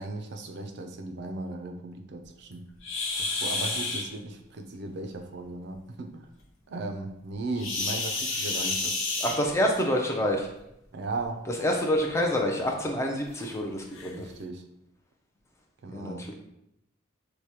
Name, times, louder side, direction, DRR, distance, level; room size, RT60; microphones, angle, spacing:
voice 1, 0.0-2.7 3.2-6.3 6.7-9.1 10.9-11.5 14.2-14.6 15.8-16.3, right 2 dB, 50° right, 5 dB, 0.4 m, -37 dB
sound 1, 2.8-4.0 7.6-9.8 11.0-11.2 11.8-11.9 12.5-12.6 13.4-13.5 13.9-14.1, left 3 dB, 65° left, 0.8 m, -30 dB
voice 2, 9.2-10.5 11.6-14.3 15.9-16.4, equal, 15° left, 0 dB, 0.4 m, -27 dB
4.7 x 2.1 x 2.8 m, 0.82 s
head